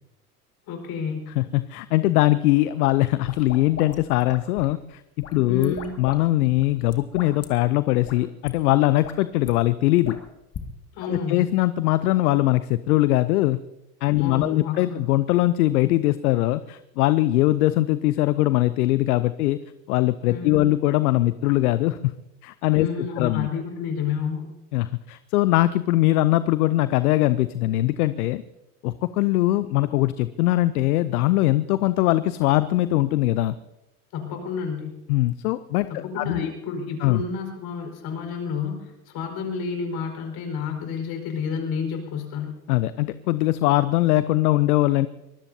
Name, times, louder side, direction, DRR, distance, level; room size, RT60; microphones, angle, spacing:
voice 1, 0.7-1.3 5.5-6.0 10.9-11.5 14.2-15.1 20.3-20.7 22.8-24.5 34.1-35.0 36.0-42.6, left 5 dB, 50° left, 3 dB, 5.0 m, -30 dB
voice 2, 1.4-10.2 11.0-13.6 14.0-19.6 19.9-22.1 22.4-22.9 23.2-23.5 24.7-28.4 28.8-33.5 35.1-36.5 37.0-37.2 42.7-45.1, left 16 dB, 70° left, 14 dB, 0.7 m, -21 dB
sound 1, 3.1-4.8 5.2-6.2 6.4-7.5 8.0-8.2 8.4-8.5 8.9-9.5 10.0-10.7, left 7 dB, 30° left, 2.1 m, -39 dB
24.0 x 19.5 x 2.8 m, 0.95 s
hypercardioid pair, 85°, 46 cm